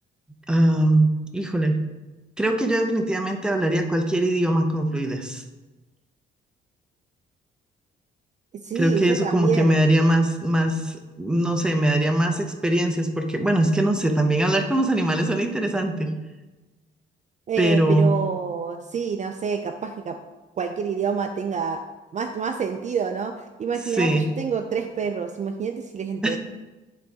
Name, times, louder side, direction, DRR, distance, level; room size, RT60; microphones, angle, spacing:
voice 1, 0.5-1.8 2.4-5.4 8.8-16.1 17.6-18.1 24.0-24.3 26.2-26.4, right 1 dB, 5° right, 4 dB, 0.8 m, -21 dB
voice 2, 8.6-9.8 17.5-20.2 20.6-21.8 22.1-26.4, right 6 dB, 35° right, 6 dB, 0.4 m, -27 dB
9.3 x 3.9 x 3.5 m, 1.2 s
cardioid pair, 90°, 20 cm